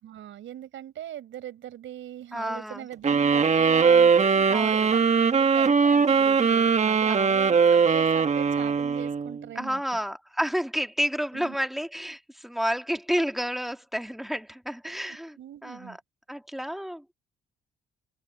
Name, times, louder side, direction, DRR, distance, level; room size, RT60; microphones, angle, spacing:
voice 1, 0.0-4.8 5.3-9.8 11.3-11.6 15.4-16.0, right 12 dB, 75° right, 5.6 m, -40 dB
voice 2, 2.3-2.9 4.5-4.9 7.1-7.4 9.6-15.4 15.6-16.0 16.3-17.1, equal, ahead, 1.9 m, -30 dB
sound 1, 3.0-9.4, right 5 dB, 35° right, 1.3 m, -21 dB
open air
cardioid pair, 90°, 20 cm